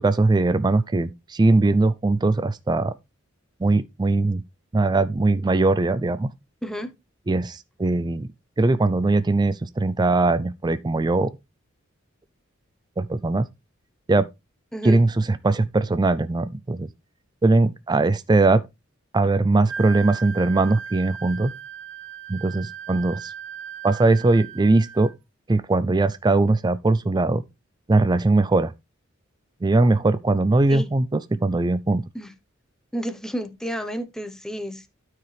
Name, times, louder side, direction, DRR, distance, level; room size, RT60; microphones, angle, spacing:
voice 1, 0.0-2.9 3.6-4.4 4.7-6.3 7.3-8.3 8.6-11.3 13.0-13.5 14.1-14.3 14.8-16.9 17.4-18.6 19.1-21.5 22.3-23.3 23.8-25.1 25.5-27.4 27.9-28.7 29.6-32.0, right 2 dB, 20° right, 0.4 m, -20 dB
voice 2, 6.6-6.9 14.7-15.0 30.7-30.9 32.1-32.3 32.9-34.9, equal, 5° left, 0.9 m, -31 dB
Wind instrument woodwind instrument, 19.7-25.1, right 7 dB, 65° right, 0.9 m, -37 dB
12.5 x 4.8 x 3.3 m
head